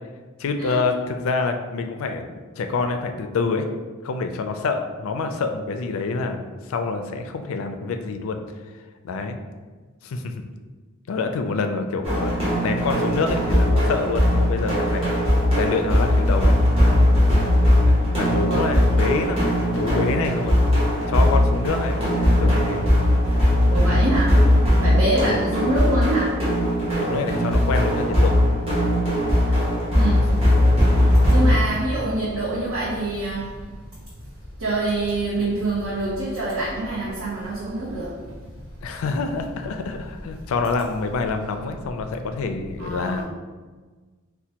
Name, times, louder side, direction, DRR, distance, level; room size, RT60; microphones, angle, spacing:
voice 1, 0.4-3.7 4.0-8.4 9.0-9.4 10.0-10.4 11.1-15.2 15.6-16.5 17.3-17.6 17.9-20.6 21.1-22.9 23.8-24.1 25.2-25.6 27.0-28.3 38.8-43.2, left 4 dB, 65° left, 6 dB, 0.3 m, -27 dB
sound 1, 12.0-31.5, left 1 dB, 30° right, 1.1 m, -19 dB
voice 2, 23.7-24.4 24.8-26.4 29.9-33.8 34.6-38.2 42.8-43.2, right 2 dB, 80° right, -8 dB, 0.8 m, -26 dB
4.3 x 2.2 x 2.8 m, 1.4 s
head